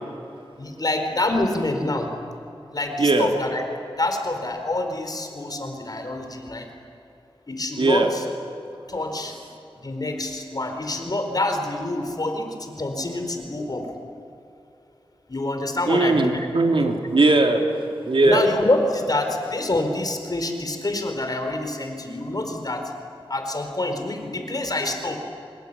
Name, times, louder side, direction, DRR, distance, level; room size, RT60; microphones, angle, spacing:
voice 1, 0.6-2.1 2.7-3.6 4.0-6.6 7.5-8.2 8.9-9.3 9.8-13.9 15.3-16.5 16.8-17.0 18.2-22.8 23.3-25.2, left 2 dB, 45° left, 5 dB, 4.5 m, -26 dB
voice 2, 3.0-3.3 7.8-8.1 15.9-17.6 18.1-18.4, right 2 dB, 65° right, 3 dB, 3.1 m, -19 dB
25.5 x 21.0 x 9.9 m, 2.7 s
wide cardioid pair, 65°, 9 cm